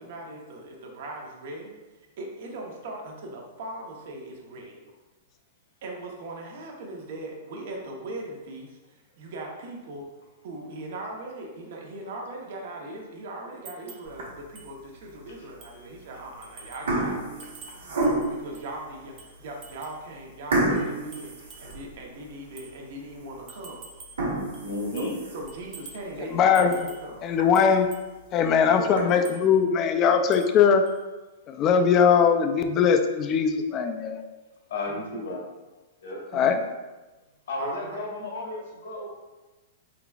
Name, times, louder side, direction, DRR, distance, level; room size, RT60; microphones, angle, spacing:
voice 1, 0.0-1.7 2.2-4.8 5.8-10.0 10.4-17.5 18.3-23.9 25.0-27.3 34.9-35.0 36.3-36.6 37.6-38.1, right 2 dB, 60° right, 0 dB, 0.9 m, -39 dB
sound 1, 13.7-14.1 14.6-14.7 15.1-15.2 15.6-15.9 16.4-16.9 17.4-18.7 19.2-20.0 20.8-21.9 22.6-22.7 23.5-24.3 24.5-25.2 25.5-26.1 26.5-27.1 27.5-28.1 29.1-29.4 30.3-30.6 30.9-31.0, right 5 dB, 30° right, 0.6 m, -47 dB
sound 2, 14.1-14.6 15.2-15.3 16.1-16.4 16.6-18.5 19.1-19.2 19.6-19.7 20.5-22.3 22.7-22.8 23.3-23.4 24.0-25.6 26.1-26.2 26.6-26.7 27.0-27.1 27.4-27.5 28.4-29.0, right 2 dB, 90° right, 1.2 m, -29 dB
voice 2, 24.6-25.1 28.8-29.1 34.7-35.4 36.0-36.2 37.5-39.1, left 2 dB, 85° left, -2 dB, 1.4 m, -33 dB
voice 3, 26.2-26.9 27.2-27.9 28.3-30.8 31.5-34.2 36.3-36.6, left 6 dB, 30° left, 7 dB, 0.4 m, -21 dB
4.6 x 3.8 x 2.3 m, 1.1 s
hypercardioid pair, 155°, 0 cm